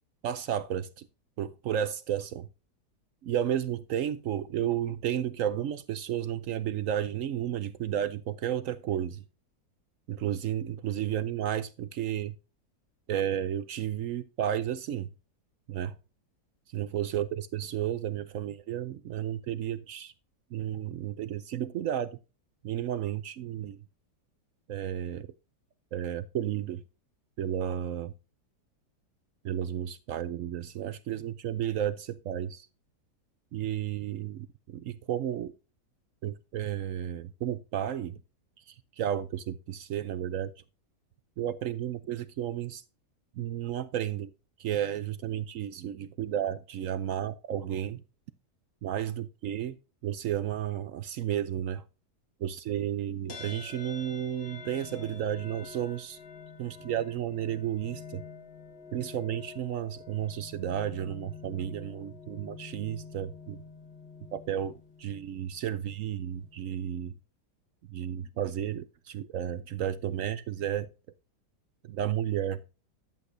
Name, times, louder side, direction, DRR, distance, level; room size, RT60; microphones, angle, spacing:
voice 1, 0.2-1.1 1.4-2.5 3.2-9.2 10.1-12.3 13.1-15.1 15.7-15.9 16.7-20.1 20.5-22.2 22.6-23.8 24.7-25.3 25.9-26.8 27.4-28.1 29.4-32.7 33.5-35.5 36.2-38.2 38.6-40.5 41.4-42.8 43.4-44.3 44.6-48.0 48.8-49.8 50.0-51.8 52.4-56.2 56.6-58.2 58.9-63.6 64.3-67.1 67.9-70.9 71.8-72.6, right 10 dB, 65° right, 0.8 m, -32 dB
sound 1, 53.3-66.8, left 5 dB, 70° left, 2.4 m, -47 dB
11.0 x 8.1 x 2.6 m
omnidirectional pair, 1.8 m